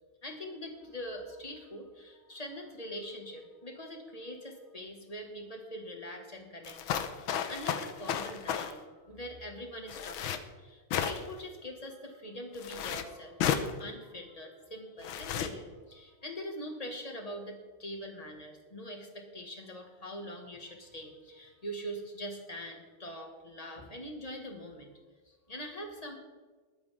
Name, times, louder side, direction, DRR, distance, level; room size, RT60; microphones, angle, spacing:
voice 1, 0.2-26.2, equal, 20° left, 2 dB, 1.9 m, -43 dB
sound 1, 6.6-8.7 9.9-10.4 10.9-11.4 12.6-13.0 13.4-13.7 15.0-15.5, left 8 dB, 75° left, 1.7 m, -33 dB
21.0 x 9.5 x 3.8 m, 1.3 s
omnidirectional pair, 2.3 m